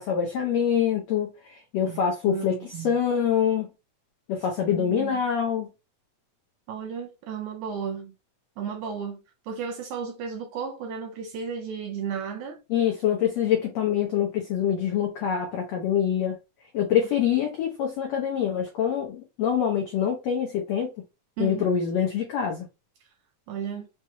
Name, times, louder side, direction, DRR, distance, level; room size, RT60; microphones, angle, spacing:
voice 1, 0.0-3.7 4.3-5.7 12.7-16.4 16.7-20.9 21.4-22.7, left 8 dB, 85° left, 1.5 m, -25 dB
voice 2, 2.3-3.0 4.7-5.2 6.7-8.1 8.6-12.6 21.4-21.7 23.5-23.9, right 7 dB, 80° right, 1.8 m, -34 dB
5.8 x 3.0 x 2.2 m
omnidirectional pair, 4.0 m